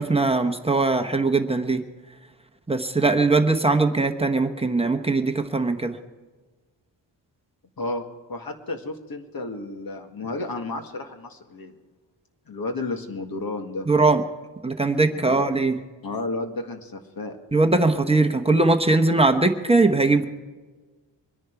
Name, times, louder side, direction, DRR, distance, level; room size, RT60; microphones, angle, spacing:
voice 1, 0.0-1.8 2.7-6.0 13.9-14.2 14.6-15.8 17.5-20.3, right 3 dB, 15° right, 5 dB, 1.0 m, -20 dB
voice 2, 7.8-11.7 12.5-13.9 15.1-15.5 16.0-17.4, left 2 dB, 50° left, 5 dB, 1.9 m, -32 dB
24.0 x 10.5 x 4.6 m, 1.3 s
wide cardioid pair, 135°, 44 cm